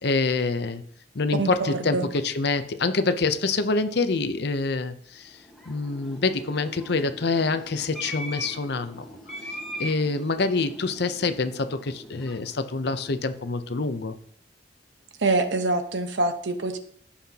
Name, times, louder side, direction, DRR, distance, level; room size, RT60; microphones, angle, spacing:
voice 1, 0.0-0.8 1.1-5.4 5.7-9.1 9.8-14.1, left 3 dB, 65° left, 10 dB, 0.7 m, -26 dB
voice 2, 1.4-2.1 15.2-16.8, right 2 dB, 85° right, 7 dB, 1.1 m, -25 dB
sound 1, 5.2-13.8, equal, ahead, 1.4 m, -41 dB
16.0 x 5.7 x 2.9 m, 0.63 s
head